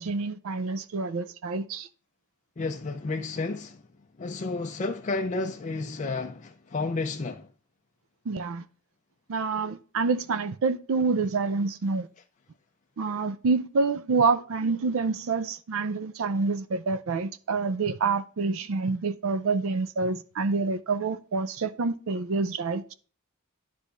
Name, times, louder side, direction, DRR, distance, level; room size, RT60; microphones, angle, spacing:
voice 1, 0.0-1.9 8.3-8.6 9.3-12.1 13.0-22.9, right 4 dB, 65° right, 0.4 m, -27 dB
voice 2, 2.6-3.8 4.2-7.5, left 3 dB, 35° left, 0.4 m, -31 dB
10.0 x 3.4 x 5.1 m
head